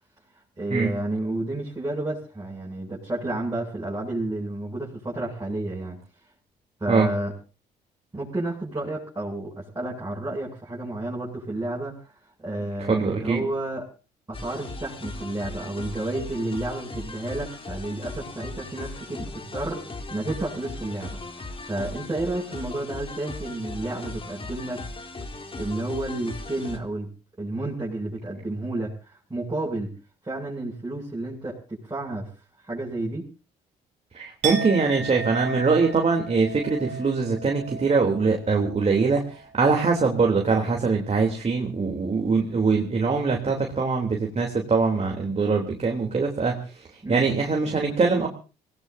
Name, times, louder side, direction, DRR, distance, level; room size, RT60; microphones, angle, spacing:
voice 1, 0.6-6.0 6.8-7.3 8.1-12.1 12.4-13.9 14.3-24.8 25.6-27.1 27.4-29.9 30.2-32.3 32.6-33.3 47.0-47.2, right 2 dB, 20° right, -4 dB, 7.8 m, -31 dB
voice 2, 12.9-13.4 34.1-39.2 39.5-46.6 47.1-48.3, right 4 dB, 35° right, 1 dB, 3.4 m, -22 dB
sound 1, 14.3-26.8, left 3 dB, 30° left, 3.5 m, -38 dB
Chink clink, 34.4-40.4 40.7-41.1, right 5 dB, 75° right, 2.4 m, -36 dB
27.0 x 18.5 x 2.8 m, 0.34 s
hypercardioid pair, 55°, 19 cm